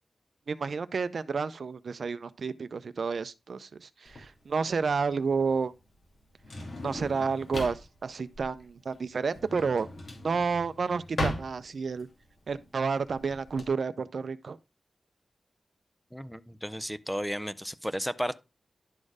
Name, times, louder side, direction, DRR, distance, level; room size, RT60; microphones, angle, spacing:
voice 1, 0.5-5.7 6.8-9.9 10.2-12.1 12.5-14.6, right 5 dB, 70° right, 0.5 m, -30 dB
Drawer open or close, 4.0-13.6, left 1 dB, 60° left, 2.5 m, -38 dB
voice 2, 16.1-18.4, equal, ahead, 0.5 m, -33 dB
11.0 x 4.3 x 4.8 m
wide cardioid pair, 115°, 0 cm